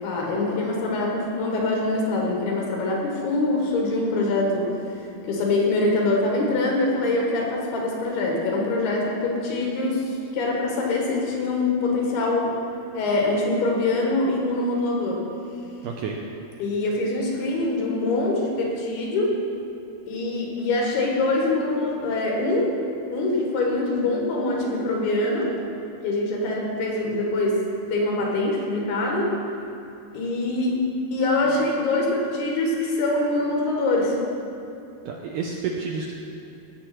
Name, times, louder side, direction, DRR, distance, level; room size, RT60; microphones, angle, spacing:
voice 1, 0.0-10.0 10.3-12.5 12.9-15.2 16.6-19.3 20.1-22.8 23.1-25.5 26.0-27.6 27.9-29.3 30.1-30.8 31.1-34.2, left 2 dB, 80° left, -2 dB, 3.7 m, -24 dB
voice 2, 15.8-16.2 35.1-36.2, right 5 dB, 80° right, 0 dB, 1.9 m, -30 dB
17.0 x 6.9 x 4.4 m, 2.7 s
omnidirectional pair, 4.5 m